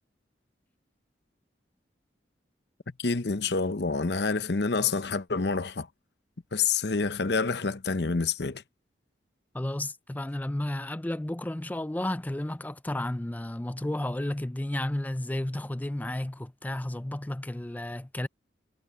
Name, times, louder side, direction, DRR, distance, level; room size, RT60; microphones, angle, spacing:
voice 1, 3.0-5.9 6.5-8.6, left 4 dB, 65° left, 0.8 m, -27 dB
voice 2, 9.5-18.3, left 1 dB, 10° left, 0.4 m, -32 dB
head